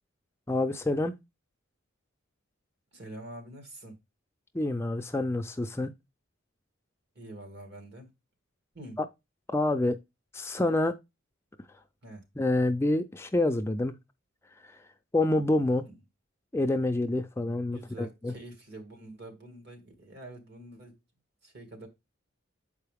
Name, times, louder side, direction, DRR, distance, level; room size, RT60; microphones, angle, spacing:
voice 1, 0.5-1.1 4.5-5.9 9.0-9.1 9.5-10.0 10.3-10.9 12.4-13.9 15.1-15.8 16.5-18.3, left 2 dB, 10° left, 0.4 m, -27 dB
voice 2, 2.9-3.9 7.2-8.1 8.7-9.0 12.0-12.2 15.8-15.9 17.6-21.0 21.4-21.9, right 1 dB, 55° right, 1.9 m, -46 dB
7.4 x 4.7 x 3.4 m
head